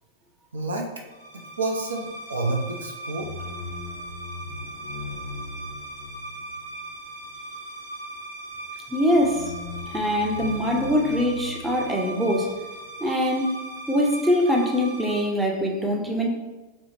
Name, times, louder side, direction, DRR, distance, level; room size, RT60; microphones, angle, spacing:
voice 1, 0.5-0.9 1.6-3.3, right 2 dB, 70° right, 1 dB, 0.4 m, -28 dB
sound 1, 1.1-15.2, equal, 85° left, 0.7 m, -37 dB
voice 2, 8.9-9.5 9.9-12.5 13.0-16.3, equal, 10° right, 0 dB, 0.5 m, -23 dB
4.2 x 2.0 x 2.9 m, 1.2 s
figure-of-eight pair, 90°, 0 cm